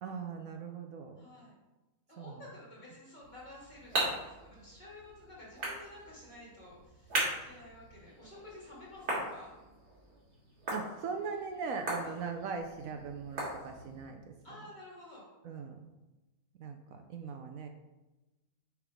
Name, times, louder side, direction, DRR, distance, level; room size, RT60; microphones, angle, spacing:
voice 1, 0.0-1.2 2.2-2.4 10.7-14.3 15.4-15.8 16.6-17.7, right 5 dB, 70° right, 5 dB, 1.0 m, -40 dB
voice 2, 1.2-1.6 2.1-9.5 12.0-12.1 14.4-15.2, left 1 dB, 30° left, -6 dB, 2.3 m, -52 dB
sound 1, 3.2-14.1, right 1 dB, 90° right, 2.3 m, -39 dB
6.6 x 3.6 x 4.9 m, 1.1 s
omnidirectional pair, 1.6 m